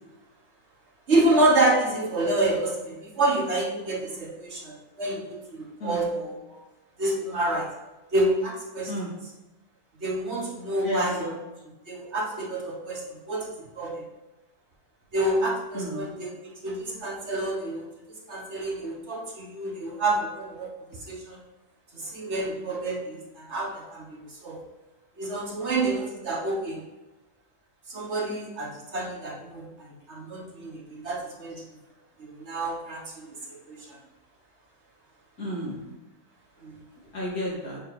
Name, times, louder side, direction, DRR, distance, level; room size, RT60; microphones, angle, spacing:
voice 1, 1.1-6.6 7.0-7.7 8.1-8.9 10.0-11.1 11.9-13.5 13.8-14.0 15.1-16.3 16.6-17.8 18.3-20.7 21.1-21.4 21.9-24.6 25.2-26.8 27.9-29.7 30.1-31.6 32.2-33.3 33.7-33.9 36.6-36.7, right 2 dB, 50° right, -2 dB, 1.5 m, -28 dB
voice 2, 5.8-6.1 8.9-9.1 10.8-11.4 15.7-16.2 35.4-35.9 37.1-37.8, equal, 75° left, -6 dB, 2.9 m, -32 dB
7.3 x 3.3 x 5.7 m, 1.1 s
omnidirectional pair, 1.6 m